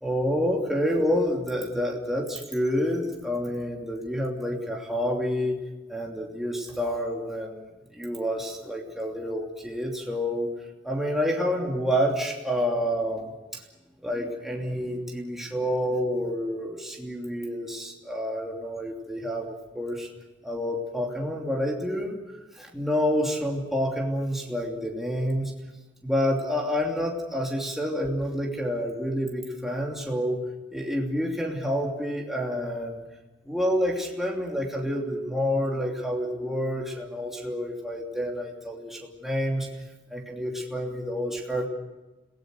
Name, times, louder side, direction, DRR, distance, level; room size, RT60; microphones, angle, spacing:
voice 1, 0.0-5.6 5.9-10.5 10.8-13.6 14.0-20.1 20.4-22.2 22.5-25.5 26.0-30.4 30.7-33.0 33.4-39.7 40.1-41.7, equal, ahead, -1 dB, 2.9 m, -28 dB
29.5 x 18.0 x 6.5 m, 1.1 s
head